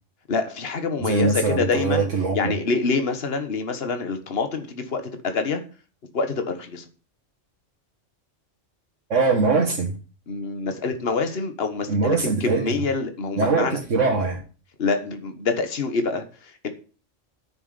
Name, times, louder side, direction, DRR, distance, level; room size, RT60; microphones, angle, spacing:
voice 1, 0.3-2.1 2.3-5.6 6.1-6.8 10.3-13.8 14.8-16.7, left 4 dB, 55° left, 7 dB, 1.6 m, -26 dB
voice 2, 1.0-2.5 9.1-9.9 11.9-12.7 13.4-14.4, right 4 dB, 85° right, -2 dB, 2.0 m, -22 dB
9.4 x 6.9 x 6.8 m, 0.36 s
omnidirectional pair, 1.2 m